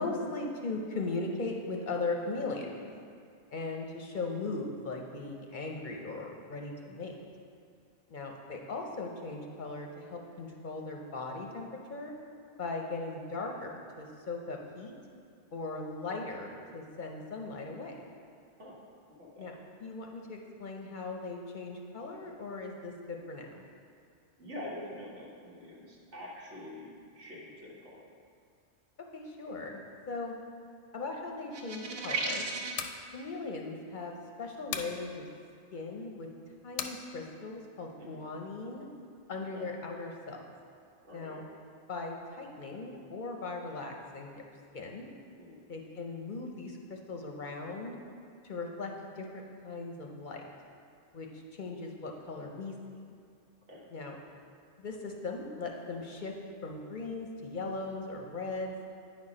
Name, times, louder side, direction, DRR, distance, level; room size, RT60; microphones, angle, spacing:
voice 1, 0.0-2.8 3.5-7.1 8.1-12.1 12.6-14.9 15.5-18.1 19.4-19.5 19.8-23.6 29.1-30.3 30.9-32.5 33.1-35.3 35.7-36.3 36.6-38.9 39.3-40.4 41.1-41.4 41.9-44.4 44.7-45.1 45.7-48.0 48.4-50.4 51.1-52.7 53.9-54.2 54.8-56.4 56.6-58.8, left 3 dB, 50° left, 1 dB, 0.7 m, -38 dB
voice 2, 19.2-19.5 24.4-26.9 27.1-28.0 38.0-38.2 39.5-39.7 41.0-41.4 45.4-45.6 53.7-53.8, left 1 dB, 85° right, -5 dB, 1.8 m, -45 dB
sound 1, 31.5-32.9, right 3 dB, 60° right, 1.0 m, -34 dB
sound 2, 32.7-33.0 34.7-35.0 36.8-37.0, left 7 dB, 90° left, 0.9 m, -36 dB
9.4 x 4.2 x 4.9 m, 2.3 s
omnidirectional pair, 1.2 m